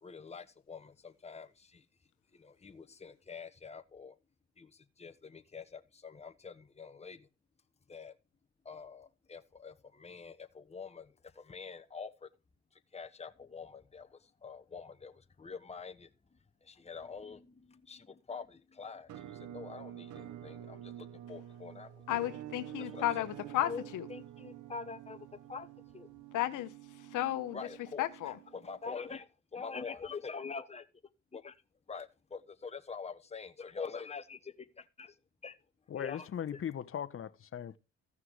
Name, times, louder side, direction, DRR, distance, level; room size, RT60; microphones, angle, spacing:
voice 1, 0.0-1.8 2.3-4.2 4.6-7.3 7.9-8.1 8.6-12.3 12.9-22.0 22.8-23.0 23.6-23.8 24.1-26.1 27.5-29.3 29.5-30.8 31.3-31.6 31.9-35.2 35.4-35.6 36.0-36.3 36.5-36.6, left 5 dB, 20° left, 1.1 m, -45 dB
Musical instrument, 19.1-28.9, right 12 dB, 75° right, 1.0 m, -48 dB
voice 2, 22.1-24.1 26.3-26.7 27.1-27.6 28.0-28.4, left 14 dB, 90° left, 1.0 m, -33 dB
voice 3, 35.9-37.8, left 9 dB, 45° left, 1.0 m, -39 dB
14.5 x 6.0 x 4.7 m
cardioid pair, 90°, 30 cm